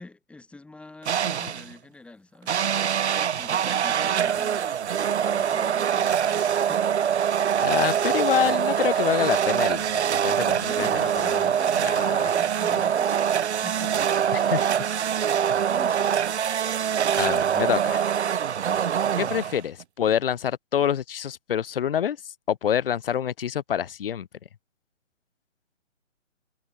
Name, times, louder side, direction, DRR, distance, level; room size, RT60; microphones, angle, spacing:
voice 1, 0.0-2.7 3.4-4.9 5.2-6.9 8.0-8.3 10.6-14.8 15.7-16.2 17.2-17.8 18.6-19.0, left 3 dB, 5° left, 2.4 m, -45 dB
sound 1, 1.1-1.7 2.5-19.8, right 8 dB, 60° right, 0.7 m, -24 dB
voice 2, 7.6-11.1 11.8-12.3 14.3-14.7 17.2-18.0 19.2-24.3, left 9 dB, 45° left, 0.7 m, -26 dB
figure-of-eight pair, 145°, 38 cm